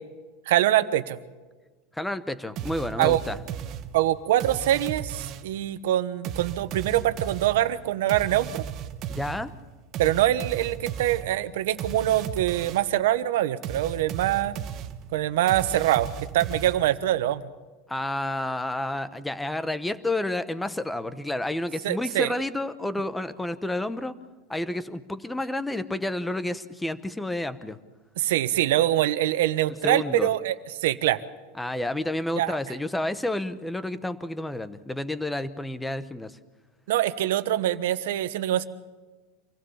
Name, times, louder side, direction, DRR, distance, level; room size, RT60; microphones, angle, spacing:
voice 1, 0.5-1.2 3.0-3.2 3.9-8.6 10.0-14.6 15.1-17.4 21.8-22.3 28.2-31.2 32.4-32.6 36.9-38.7, right 13 dB, 80° right, 12 dB, 1.2 m, -24 dB
voice 2, 1.9-3.4 9.1-9.5 17.9-24.1 24.5-27.8 29.8-30.3 31.6-36.4, left 1 dB, 5° left, 13 dB, 1.0 m, -30 dB
sound 1, 2.6-5.6 6.2-13.0 13.6-17.1, right 9 dB, 40° right, 1.3 m, -36 dB
26.5 x 16.0 x 7.2 m, 1.3 s
supercardioid pair, 150°, 0 cm